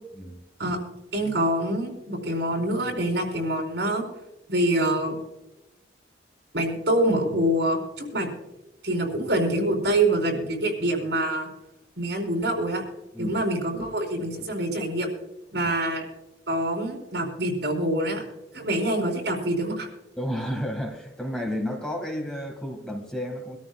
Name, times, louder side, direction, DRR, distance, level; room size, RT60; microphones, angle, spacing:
voice 1, 1.1-4.0 4.5-5.2 6.5-8.3 8.8-11.5 12.0-12.8 13.2-15.1 15.5-16.0 16.5-18.2 18.5-19.9, right 1 dB, 70° right, 0 dB, 4.4 m, -25 dB
voice 2, 20.2-23.6, equal, 5° left, 2 dB, 1.9 m, -32 dB
25.0 x 13.5 x 2.4 m, 0.99 s
head